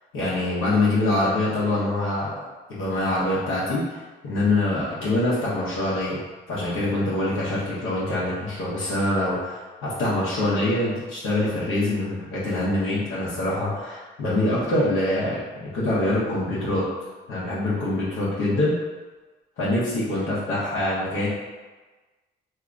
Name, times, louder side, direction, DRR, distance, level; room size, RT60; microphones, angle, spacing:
voice 1, 0.1-2.3 2.7-6.2 6.5-16.8 17.3-18.7 19.6-21.3, left 1 dB, 85° left, -8 dB, 0.9 m, -24 dB
2.7 x 2.6 x 3.4 m, 1.3 s
cardioid pair, 90°, 20 cm